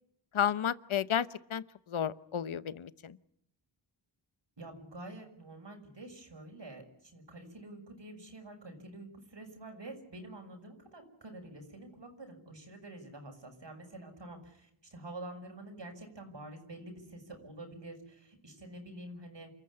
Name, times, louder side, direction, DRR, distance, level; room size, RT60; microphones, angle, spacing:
voice 1, 0.3-3.2, left 9 dB, 85° left, 16 dB, 0.9 m, -32 dB
voice 2, 4.6-19.5, right 1 dB, 65° right, 5 dB, 6.3 m, -48 dB
28.5 x 14.5 x 9.8 m, 0.74 s
wide cardioid pair, 80°, 47 cm